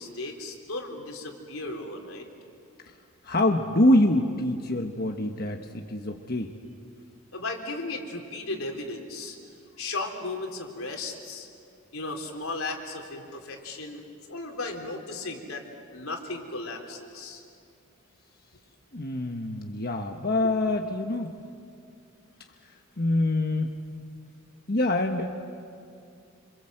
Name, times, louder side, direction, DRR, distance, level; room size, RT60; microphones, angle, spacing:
voice 1, 0.0-2.3 7.3-9.4 9.8-11.5 11.9-15.6 15.9-17.4, left 2 dB, 85° left, 2 dB, 3.9 m, -35 dB
voice 2, 3.2-6.6 18.9-21.3 22.6-23.7 24.7-25.4, left 1 dB, 45° left, 3 dB, 1.3 m, -25 dB
28.0 x 26.5 x 7.9 m, 2.4 s
head